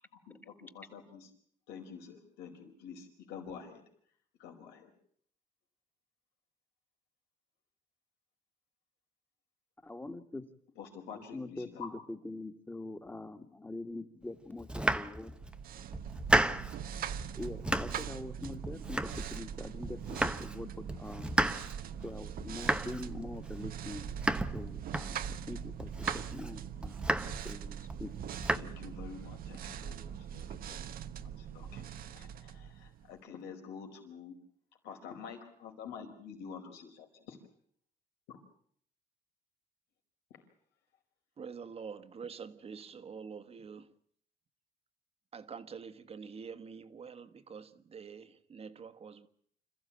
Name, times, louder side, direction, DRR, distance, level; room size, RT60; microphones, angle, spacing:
voice 1, 0.2-1.3 1.7-3.8 4.4-4.9 10.8-11.9 28.5-30.0 30.3-30.8 31.2-34.3 34.8-37.0, left 6 dB, 90° left, 4.8 m, -48 dB
voice 2, 9.8-10.4 11.3-15.3 17.3-21.3 22.0-24.1 24.5-28.1, left 2 dB, 10° left, 2.0 m, -44 dB
Domestic sounds home sounds, 14.6-15.6 15.9-16.8 17.2-18.1 18.4-19.5 19.8-20.6 20.9-25.4 25.8-26.5 26.8-27.6 27.9-28.6, right 1 dB, 5° right, 0.9 m, -33 dB
sound 1, 15.3-33.2, right 8 dB, 60° right, 1.1 m, -42 dB
voice 3, 41.4-43.9 45.3-49.3, right 6 dB, 35° right, 1.5 m, -46 dB
27.0 x 14.5 x 8.8 m
cardioid pair, 110°, 17 cm